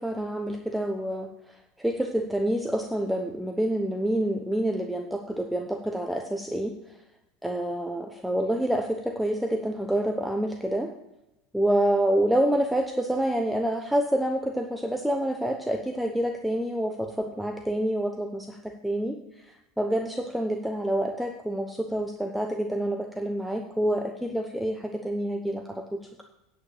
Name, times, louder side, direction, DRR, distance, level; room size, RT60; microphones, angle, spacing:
voice 1, 0.0-6.7 7.4-10.9 11.5-19.4 19.8-26.2, right 1 dB, 5° right, 3 dB, 1.0 m, -27 dB
9.3 x 5.6 x 8.1 m, 0.92 s
supercardioid pair, 120°, 0 cm